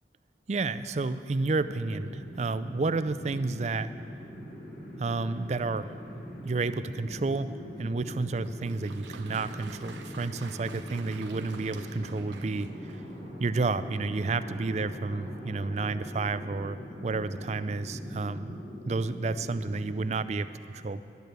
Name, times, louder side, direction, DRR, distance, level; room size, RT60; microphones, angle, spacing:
voice 1, 0.5-3.9 5.0-6.0 6.4-12.9 13.4-18.6 18.8-21.1, right 3 dB, 40° right, 13 dB, 0.4 m, -31 dB
sound 1, 1.3-20.0, equal, 60° left, 4.1 m, -42 dB
Applause, 8.4-13.3, right 4 dB, 90° right, 0.9 m, -49 dB
12.0 x 9.2 x 8.1 m, 2.5 s
head